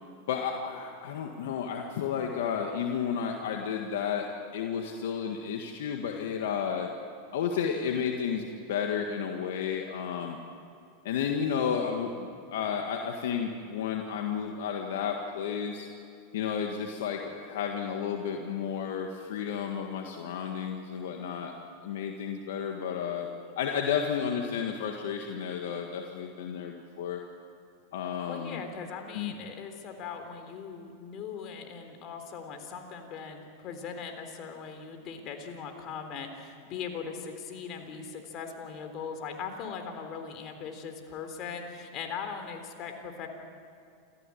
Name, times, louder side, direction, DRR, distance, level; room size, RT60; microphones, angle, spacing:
voice 1, 0.3-6.9 7.3-10.4 11.0-15.9 16.3-21.5 21.8-23.3 23.6-27.2 27.9-28.6 29.1-29.3, left 7 dB, 75° left, 3 dB, 1.8 m, -32 dB
voice 2, 28.2-43.3, left 6 dB, 45° left, 6 dB, 3.7 m, -40 dB
27.0 x 15.0 x 8.6 m, 2.5 s
hypercardioid pair, 105°, 0 cm